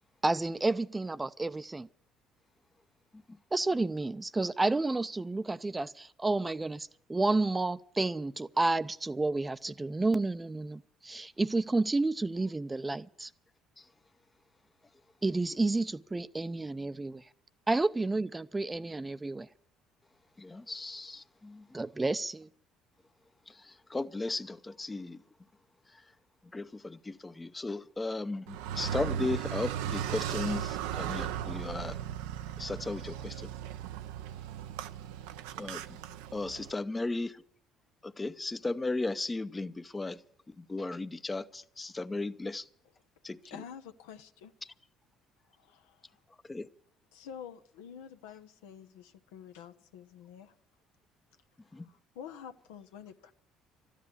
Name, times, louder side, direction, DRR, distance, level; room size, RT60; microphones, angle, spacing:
voice 1, 0.2-1.9 3.5-13.3 15.2-17.2 17.7-19.5 21.7-22.5, right 2 dB, 20° right, 0.6 m, -30 dB
voice 2, 20.4-21.6 23.9-25.2 26.5-32.0 32.6-33.3 35.6-35.8 36.3-37.4 38.0-40.2 40.7-42.6 43.2-43.4 46.5-46.7 51.7-51.9, left 2 dB, 20° left, 0.7 m, -35 dB
Car, 28.5-36.7, right 10 dB, 75° right, 0.6 m, -37 dB
voice 3, 43.4-44.5 45.5-46.2 47.1-50.5 51.8-53.3, left 8 dB, 80° left, 0.8 m, -48 dB
13.5 x 10.0 x 8.5 m
hypercardioid pair, 55°, 0 cm